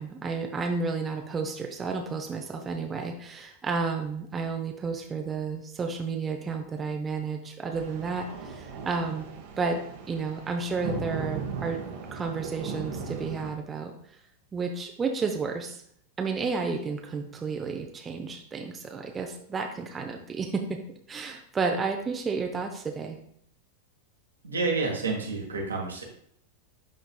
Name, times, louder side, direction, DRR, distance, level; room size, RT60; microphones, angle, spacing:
voice 1, 0.0-9.3 9.6-9.8 10.1-11.8 12.1-13.9 14.5-15.8 16.2-20.6 21.1-23.2, right 4 dB, 20° right, 3 dB, 0.6 m, -31 dB
sound 1, 7.7-13.5, right 5 dB, 50° right, 1.0 m, -37 dB
voice 2, 24.4-26.0, right 3 dB, 75° right, 0 dB, 1.4 m, -29 dB
11.5 x 3.9 x 2.2 m, 0.66 s
figure-of-eight pair, 90°, 0 cm